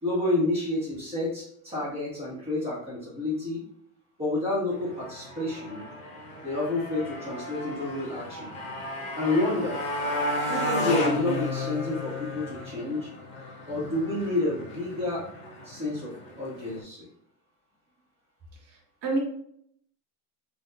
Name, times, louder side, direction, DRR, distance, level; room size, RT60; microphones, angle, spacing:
voice 1, 0.0-3.6 4.2-5.8 6.4-8.5 9.1-9.8 10.4-13.1 13.7-15.2 15.6-17.1, left 2 dB, 15° right, -6 dB, 1.5 m, -29 dB
Motorcycle, 4.7-16.8, left 1 dB, 15° left, 0.4 m, -34 dB
voice 2, 18.7-19.2, right 3 dB, 45° right, -1 dB, 1.4 m, -29 dB
5.5 x 2.7 x 2.4 m, 0.69 s
supercardioid pair, 170°, 47 cm